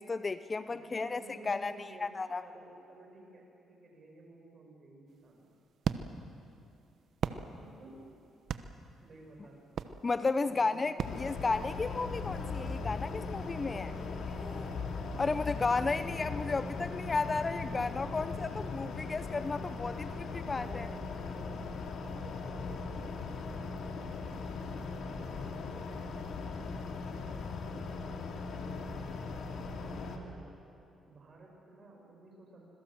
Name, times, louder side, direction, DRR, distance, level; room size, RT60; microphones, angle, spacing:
voice 1, 0.0-1.2 1.4-1.7 2.0-2.4 10.0-13.9 15.2-20.1 20.5-20.9, left 3 dB, 30° left, 13 dB, 0.7 m, -33 dB
voice 2, 0.7-2.1 2.4-5.5 7.4-8.1 8.6-9.6 10.4-11.6 13.7-14.3 15.0-15.4 19.8-20.3 20.6-21.6 22.1-24.4 25.0-26.4 27.0-27.4 27.6-30.5 31.0-32.7, right 2 dB, 40° right, 0 dB, 7.0 m, -54 dB
sound 1, 5.1-12.1, right 7 dB, 65° right, 1.0 m, -40 dB
sound 2, 11.0-30.2, left 4 dB, 70° left, 2.7 m, -39 dB
sound 3, 11.2-13.4 13.7-17.6 17.9-18.0 18.3-18.8, right 1 dB, 5° right, 2.6 m, -54 dB
26.0 x 22.0 x 7.8 m, 2.7 s
cardioid pair, 90°, 0 cm